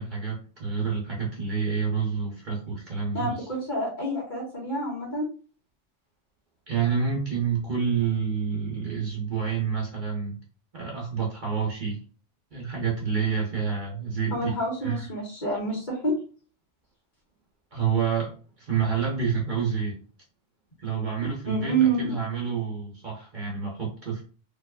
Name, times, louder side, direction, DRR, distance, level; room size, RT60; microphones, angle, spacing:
voice 1, 0.0-3.4 6.7-10.4 10.7-12.0 12.5-14.5 14.8-15.0 17.7-20.0 20.8-24.2, right 6 dB, 45° right, -3 dB, 1.0 m, -28 dB
voice 2, 3.1-5.3 14.3-16.2 21.5-22.2, right 2 dB, 40° left, -4 dB, 1.7 m, -27 dB
4.4 x 2.5 x 2.4 m, 0.38 s
omnidirectional pair, 1.2 m